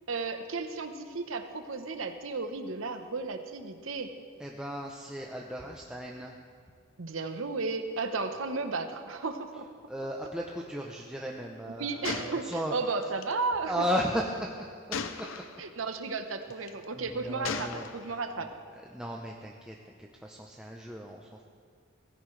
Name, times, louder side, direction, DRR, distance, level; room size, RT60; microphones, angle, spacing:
voice 1, 0.1-4.1 7.0-9.7 11.8-13.8 15.6-18.5, right 4 dB, 85° right, 7 dB, 1.0 m, -34 dB
voice 2, 4.4-6.4 9.9-12.7 13.6-15.3 16.7-17.9 18.4-18.5 18.9-21.3, equal, 5° right, -1 dB, 0.7 m, -35 dB
Gunshot gunfire, 12.0-13.3 14.9-15.7 16.5-16.8 17.4-18.2, left 5 dB, 85° left, 0.7 m, -37 dB
17.5 x 15.5 x 3.3 m, 2.1 s
head